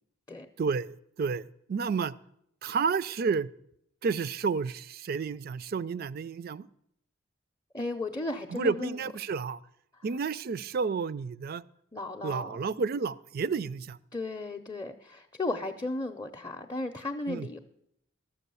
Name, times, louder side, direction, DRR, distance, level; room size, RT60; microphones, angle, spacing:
voice 1, 0.6-1.4 1.7-2.1 2.6-3.5 4.0-6.7 8.5-9.6 10.0-11.6 12.2-14.0 17.3-17.5, right 5 dB, 50° right, 18 dB, 0.3 m, -31 dB
voice 2, 7.7-9.0 11.9-12.6 14.1-17.6, left 2 dB, 20° left, 2 dB, 0.5 m, -35 dB
13.0 x 6.9 x 6.9 m, 0.74 s
head